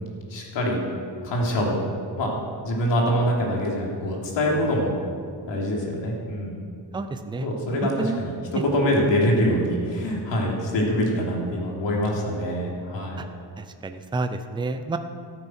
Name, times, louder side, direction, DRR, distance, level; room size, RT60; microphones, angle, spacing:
voice 1, 0.3-0.8 1.2-1.8 2.2-2.3 2.6-4.9 5.5-6.5 7.4-8.3 8.6-13.3, equal, 70° left, -2 dB, 3.2 m, -24 dB
voice 2, 6.9-7.5 8.0-8.2 8.5-8.6 13.2-13.3 13.6-15.0, right 3 dB, 10° right, 8 dB, 0.5 m, -29 dB
14.0 x 9.1 x 6.2 m, 2.3 s
cardioid pair, 155°, 46 cm